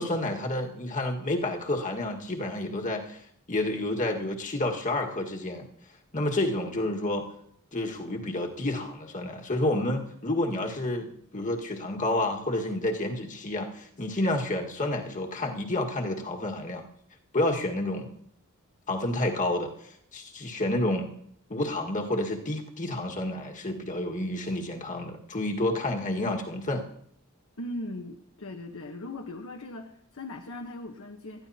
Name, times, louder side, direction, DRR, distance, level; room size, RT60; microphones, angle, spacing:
voice 1, 0.0-3.2 3.5-5.6 6.1-7.3 7.7-16.8 17.3-18.1 18.9-21.1 21.5-26.8, left 1 dB, 35° left, 2 dB, 1.7 m, -29 dB
voice 2, 27.6-31.5, left 1 dB, 65° left, 3 dB, 1.1 m, -39 dB
20.0 x 14.0 x 2.9 m, 0.69 s
head